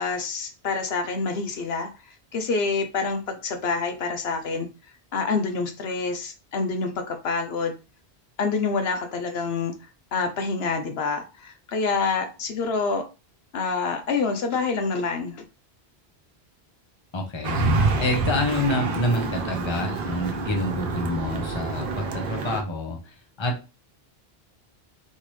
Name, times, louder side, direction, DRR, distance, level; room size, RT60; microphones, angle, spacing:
voice 1, 0.0-4.7 5.1-7.7 8.4-9.7 10.1-13.0 13.5-15.4, left 4 dB, 75° left, 6 dB, 1.0 m, -27 dB
voice 2, 17.1-17.6 18.0-23.6, left 1 dB, 30° left, 2 dB, 0.9 m, -27 dB
sound 1, 17.4-22.6, right 3 dB, 60° right, 0.9 m, -27 dB
4.2 x 3.5 x 3.1 m, 0.30 s
omnidirectional pair, 1.1 m